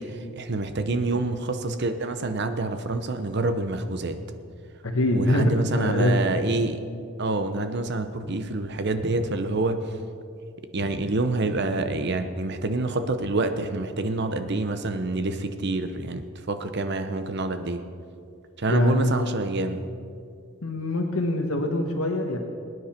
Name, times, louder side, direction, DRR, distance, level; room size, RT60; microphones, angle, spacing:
voice 1, 0.0-4.2 5.1-6.8 7.2-9.8 10.7-17.8 18.6-19.8, right 2 dB, 55° right, 8 dB, 0.8 m, -27 dB
voice 2, 4.8-6.2 18.7-19.3 20.6-22.4, left 1 dB, 80° left, 2 dB, 1.3 m, -24 dB
22.5 x 9.7 x 4.4 m, 2.4 s
head